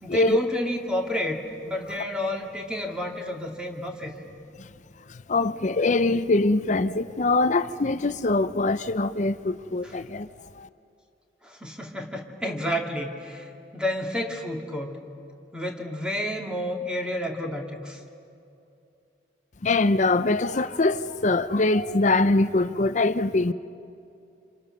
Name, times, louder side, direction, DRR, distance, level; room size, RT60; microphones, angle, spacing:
voice 1, 0.0-4.1 9.8-10.0 11.4-15.0 15.5-18.0, left 1 dB, 5° right, 2.3 m, -30 dB
voice 2, 5.3-10.3 10.6-10.7 19.6-23.5, left 2 dB, 40° left, 0.6 m, -23 dB
29.0 x 27.5 x 6.5 m
head